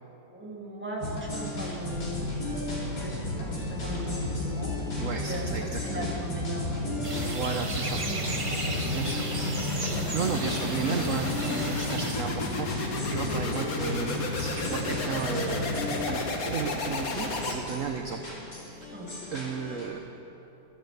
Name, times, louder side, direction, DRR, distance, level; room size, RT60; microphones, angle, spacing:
voice 1, 0.3-4.8 5.1-7.6 8.0-10.3 13.2-13.5 18.9-19.1, right 1 dB, 5° right, -3 dB, 2.2 m, -39 dB
sound 1, 1.0-19.8, left 1 dB, 85° left, 3.6 m, -35 dB
sound 2, 1.9-18.0, left 3 dB, 60° left, 1.7 m, -34 dB
voice 2, 5.0-6.1 7.2-8.0 8.9-9.2 10.1-15.8 16.1-19.0 19.3-20.0, right 6 dB, 55° right, 4 dB, 1.1 m, -34 dB
sound 3, 7.0-12.1, right 2 dB, 25° right, 0.8 m, -35 dB
13.5 x 10.5 x 8.0 m, 3.0 s
omnidirectional pair, 1.8 m